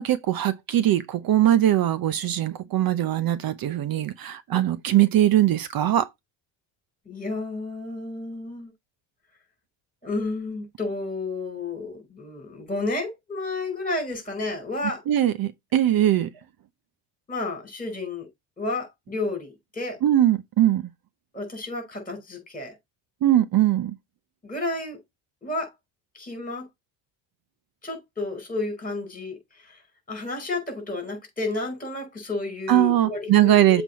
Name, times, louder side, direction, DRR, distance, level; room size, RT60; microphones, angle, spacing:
voice 1, 0.0-6.1 15.1-16.3 20.0-20.8 23.2-23.9 32.7-33.8, right 12 dB, 45° right, 0.8 m, -21 dB
voice 2, 7.1-8.7 10.0-15.0 17.3-18.3 18.6-20.0 21.3-22.7 24.4-25.0 25.4-25.7 26.2-26.7 27.8-29.4 30.1-33.8, left 2 dB, 15° left, 5.2 m, -31 dB
7.5 x 4.5 x 4.2 m
cardioid pair, 125°, 49 cm